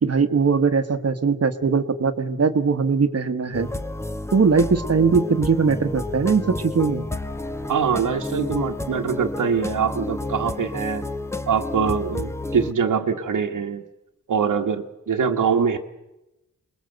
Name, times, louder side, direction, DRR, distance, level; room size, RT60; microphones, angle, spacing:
voice 1, 0.0-3.7 4.3-7.0, right 5 dB, 50° right, 10 dB, 1.3 m, -20 dB
sound 1, 3.5-12.7, left 2 dB, 10° left, 1.1 m, -30 dB
voice 2, 7.7-11.0 11.5-13.8 14.3-15.8, right 6 dB, 80° right, 2 dB, 1.5 m, -23 dB
24.0 x 20.5 x 7.9 m, 0.95 s
wide cardioid pair, 80°, 31 cm